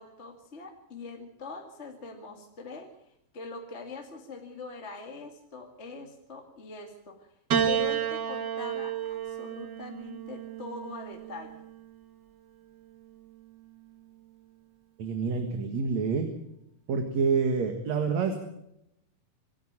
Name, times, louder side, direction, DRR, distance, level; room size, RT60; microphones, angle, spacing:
voice 1, 0.0-2.9 3.3-7.3 7.7-11.5, left 4 dB, 25° left, 3 dB, 1.9 m, -42 dB
Piano, 7.5-12.0 13.0-13.8, right 8 dB, 85° right, 0.9 m, -32 dB
voice 2, 15.0-16.3 16.9-18.4, right 5 dB, 55° right, 6 dB, 2.8 m, -27 dB
26.0 x 11.0 x 8.9 m, 0.80 s
omnidirectional pair, 4.2 m